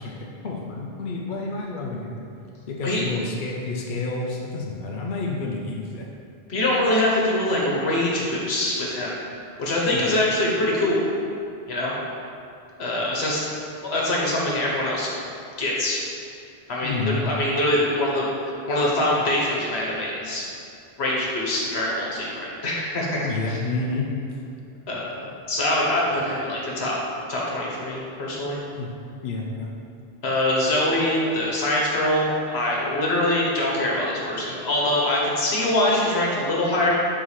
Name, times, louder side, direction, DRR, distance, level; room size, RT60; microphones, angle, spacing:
voice 1, 0.0-2.2 2.7-6.1 9.9-10.1 16.8-17.2 23.2-24.4 28.8-28.9 29.2-29.7, left 3 dB, 60° left, -1 dB, 0.8 m, -29 dB
voice 2, 6.5-9.2 9.6-11.0 11.7-11.9 12.8-13.4 13.8-15.1 15.6-16.0 16.7-20.4 21.0-23.6 24.9-27.0 27.3-28.6 30.2-37.0, left 1 dB, 85° left, -4 dB, 1.3 m, -24 dB
4.8 x 3.7 x 5.6 m, 2.6 s
omnidirectional pair, 1.1 m